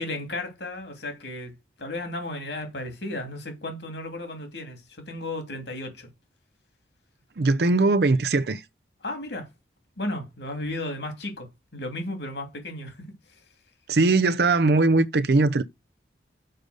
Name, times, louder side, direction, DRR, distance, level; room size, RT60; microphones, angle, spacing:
voice 1, 0.0-6.1 9.0-9.5 10.0-11.5 11.7-13.4, left 1 dB, 70° left, 2.8 m, -34 dB
voice 2, 7.4-8.6 13.9-15.6, right 3 dB, 60° right, 0.6 m, -20 dB
6.7 x 5.3 x 6.3 m
head